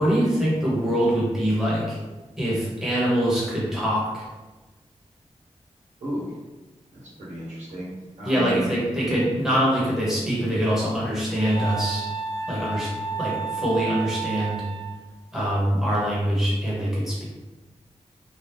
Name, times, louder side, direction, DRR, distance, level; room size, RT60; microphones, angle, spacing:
voice 1, 0.0-2.0 2.4-4.3 8.2-12.0 12.5-12.9 13.2-14.6 15.3-17.2, equal, 5° right, -7 dB, 1.1 m, -24 dB
voice 2, 6.0-6.4 6.9-8.7, equal, 85° right, -9 dB, 1.1 m, -33 dB
Wind instrument woodwind instrument, 11.4-15.0, right 5 dB, 65° right, 0.4 m, -31 dB
2.8 x 2.3 x 3.5 m, 1.2 s
wide cardioid pair, 120°, 12 cm